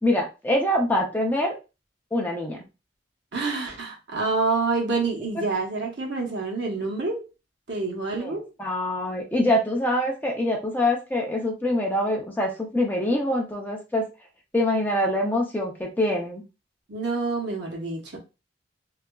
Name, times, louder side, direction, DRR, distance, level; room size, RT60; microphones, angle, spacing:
voice 1, 0.0-1.5 2.1-2.6 8.1-14.1 14.5-16.4, left 1 dB, 10° left, 0.4 m, -25 dB
voice 2, 3.3-7.3 7.7-8.5 16.9-18.2, right 3 dB, 65° right, 0.9 m, -27 dB
2.7 x 2.3 x 2.2 m
head